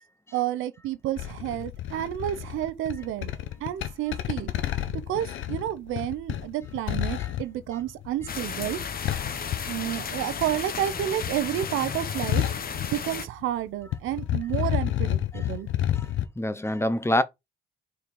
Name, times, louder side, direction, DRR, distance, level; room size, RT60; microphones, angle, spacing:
voice 1, 0.3-3.3 3.6-4.5 5.1-8.8 9.7-12.4 12.9-15.7, right 12 dB, 90° right, 0.8 m, -30 dB
sound 1, 1.2-10.4 10.7-13.6 13.8-16.3, left 12 dB, 80° left, 0.9 m, -30 dB
sound 2, 8.3-13.3, left 6 dB, 50° left, 1.0 m, -34 dB
voice 2, 16.4-17.2, left 1 dB, 15° left, 0.7 m, -26 dB
4.6 x 4.2 x 5.2 m
cardioid pair, 90°, 20 cm